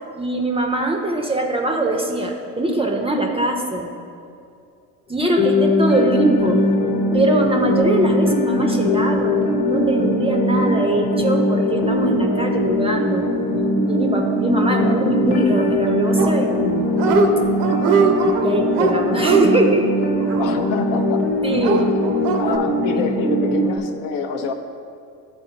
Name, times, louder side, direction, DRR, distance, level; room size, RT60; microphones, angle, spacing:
voice 1, 0.1-3.9 5.1-6.6 7.1-13.3 13.9-16.9 18.4-19.9 21.4-21.9 22.9-23.2, right 1 dB, 10° right, 2 dB, 0.6 m, -21 dB
sound 1, 5.3-23.8, left 1 dB, 75° left, 1.0 m, -21 dB
Dog, 16.2-16.7 16.9-17.3 17.6-21.0 21.6-22.6, right 5 dB, 65° right, 0.8 m, -21 dB
voice 2, 20.4-21.3 22.4-24.5, left 5 dB, 45° left, 6 dB, 0.6 m, -26 dB
11.0 x 4.2 x 2.8 m, 2.5 s
hypercardioid pair, 75°, 47 cm